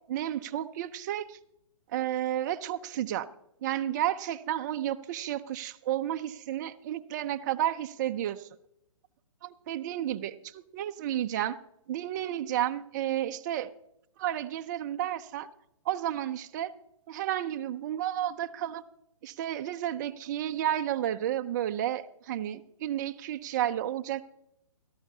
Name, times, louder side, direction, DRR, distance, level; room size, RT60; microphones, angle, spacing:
voice 1, 0.1-1.4 1.9-3.3 3.6-8.5 9.4-10.4 10.7-11.6 11.9-13.7 14.2-15.5 15.9-16.7 17.1-18.8 19.2-24.2, right 12 dB, 35° right, 8 dB, 0.4 m, -31 dB
17.5 x 13.0 x 2.7 m, 0.79 s
hypercardioid pair, 145°, 17 cm